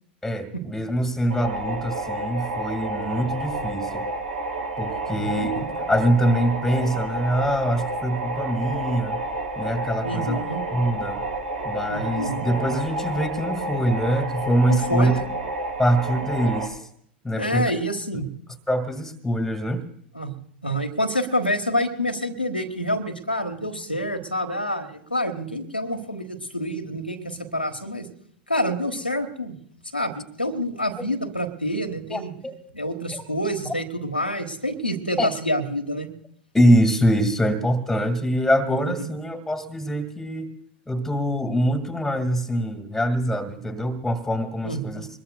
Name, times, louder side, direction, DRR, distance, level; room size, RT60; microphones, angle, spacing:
voice 1, 0.2-4.1 4.8-9.2 9.6-10.4 10.7-11.2 11.6-15.2 15.8-16.8 17.2-17.7 18.7-19.8 32.1-32.5 33.1-33.2 35.2-35.3 36.5-40.5 40.9-45.1, equal, 5° left, 6 dB, 1.9 m, -24 dB
sound 1, 1.3-16.7, right 2 dB, 70° right, 4.1 m, -30 dB
voice 2, 5.1-5.7 10.0-10.6 11.9-12.5 14.7-15.2 17.3-18.3 20.1-20.3 20.6-28.1 28.5-29.5 29.9-32.3 32.7-36.1 38.9-39.1 44.6-44.8, equal, 90° left, 3 dB, 1.4 m, -27 dB
23.0 x 21.0 x 2.3 m, 0.63 s
figure-of-eight pair, 85°, 5 cm